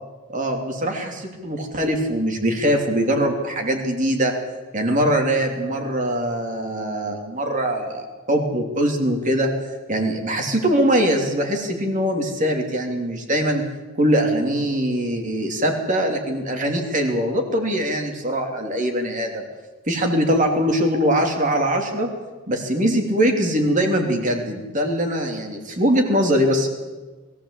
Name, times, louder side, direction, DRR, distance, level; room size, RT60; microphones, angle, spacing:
voice 1, 0.3-4.3 4.7-9.5 9.9-13.6 13.9-19.4 19.9-22.1 22.5-26.7, equal, 35° right, 3 dB, 3.1 m, -22 dB
22.0 x 15.0 x 8.4 m, 1.3 s
head